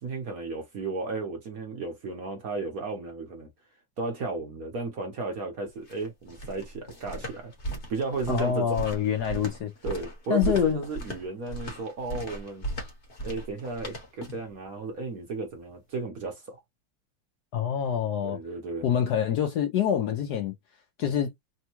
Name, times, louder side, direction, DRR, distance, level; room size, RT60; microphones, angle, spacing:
voice 1, 0.0-3.5 4.0-7.5 7.9-8.8 9.8-12.7 13.2-16.6 18.2-18.9, right 3 dB, 55° right, 1.1 m, -34 dB
sound 1, 5.6-14.5, right 1 dB, 40° left, 1.3 m, -37 dB
voice 2, 8.3-9.7 10.3-10.8 17.5-18.4 18.8-20.5 21.0-21.3, left 8 dB, 70° left, 1.0 m, -26 dB
3.5 x 2.2 x 2.9 m
omnidirectional pair, 2.2 m